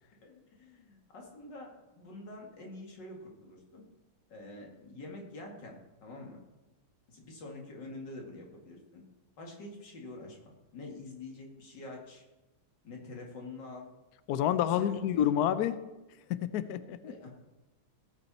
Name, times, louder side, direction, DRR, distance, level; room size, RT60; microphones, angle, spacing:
voice 1, 0.2-3.8 4.3-5.8 6.0-6.4 7.1-9.0 9.4-12.2 12.8-13.9 14.6-15.0 17.1-17.3, left 2 dB, 55° left, 0 dB, 2.8 m, -46 dB
voice 2, 14.3-15.8 16.3-17.1, left 10 dB, 80° left, 13 dB, 0.8 m, -29 dB
17.5 x 8.3 x 4.2 m, 1.0 s
omnidirectional pair, 2.4 m